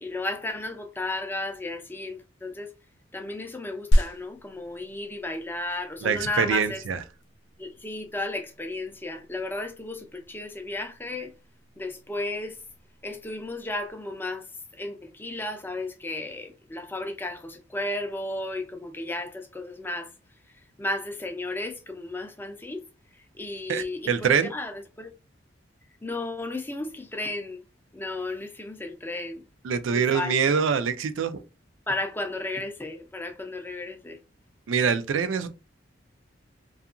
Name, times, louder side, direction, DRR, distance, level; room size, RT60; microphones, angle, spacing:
voice 1, 0.0-2.7 3.1-6.8 7.6-11.3 11.8-12.6 13.0-14.4 14.8-20.1 20.8-22.8 23.4-25.1 26.0-27.6 27.9-29.4 29.9-30.6 31.9-34.2, left 2 dB, 10° left, 0.4 m, -34 dB
sound 1, 3.9-13.9, equal, 65° left, 0.5 m, -32 dB
voice 2, 6.0-7.0 23.7-24.5 29.6-31.4 34.7-35.5, right 6 dB, 75° right, 0.4 m, -24 dB
2.7 x 2.4 x 2.4 m
head